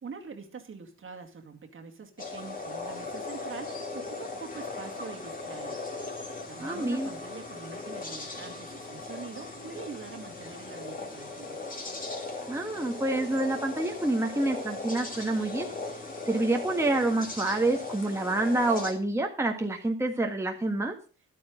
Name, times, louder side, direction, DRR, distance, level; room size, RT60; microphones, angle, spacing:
voice 1, 0.0-5.7 6.5-11.6, right 5 dB, 40° right, 4 dB, 2.2 m, -44 dB
sound 1, 2.2-18.9, left 3 dB, 30° left, 3.3 m, -38 dB
voice 2, 6.6-7.1 12.5-15.7 16.3-20.9, right 2 dB, 10° right, 2 dB, 1.6 m, -27 dB
11.5 x 8.7 x 5.1 m, 0.36 s
cardioid pair, 90°, 30 cm